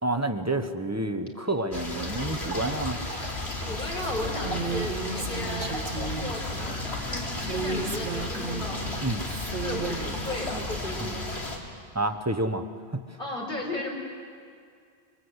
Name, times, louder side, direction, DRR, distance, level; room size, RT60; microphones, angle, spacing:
voice 1, 0.0-3.0 9.0-9.2 11.9-12.6 12.9-13.0, right 2 dB, 15° right, 7 dB, 1.0 m, -28 dB
sound 1, 1.7-11.6, left 2 dB, 85° left, 3.6 m, -33 dB
voice 2, 3.6-9.1 9.6-11.2 13.2-13.9, left 1 dB, 55° left, 0 dB, 4.8 m, -35 dB
Female speech woman speaking, 4.4-6.4 7.4-8.8 9.2-10.2, right 5 dB, 55° right, 1.8 m, -34 dB
26.0 x 24.0 x 8.1 m, 2.3 s
omnidirectional pair, 1.1 m